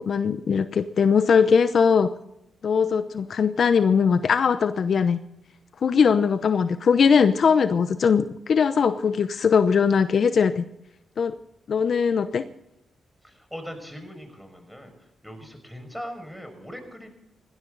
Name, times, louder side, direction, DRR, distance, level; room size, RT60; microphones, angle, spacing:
voice 1, 0.0-2.1 2.6-5.2 5.8-10.6 11.2-11.4 11.7-12.5, left 6 dB, 60° left, 11 dB, 0.8 m, -20 dB
voice 2, 13.2-17.1, equal, ahead, 6 dB, 5.8 m, -40 dB
19.5 x 15.5 x 4.0 m, 0.81 s
cardioid pair, 60°, 0 cm